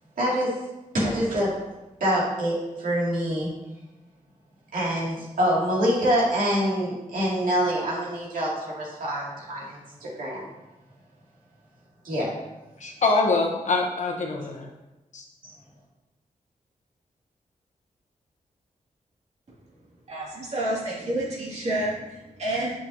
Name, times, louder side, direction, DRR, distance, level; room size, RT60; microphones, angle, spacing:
voice 1, 0.2-0.5 0.9-1.5 2.0-3.5 4.7-10.4 12.0-12.3 15.4-15.5, equal, 80° right, -5 dB, 2.4 m, -25 dB
voice 2, 12.8-14.7 15.1-15.2, left 3 dB, 60° left, 1 dB, 1.1 m, -24 dB
voice 3, 20.1-22.8, right 1 dB, 50° right, -6 dB, 2.3 m, -29 dB
8.8 x 6.2 x 2.8 m, 1.0 s
wide cardioid pair, 180°, 14 cm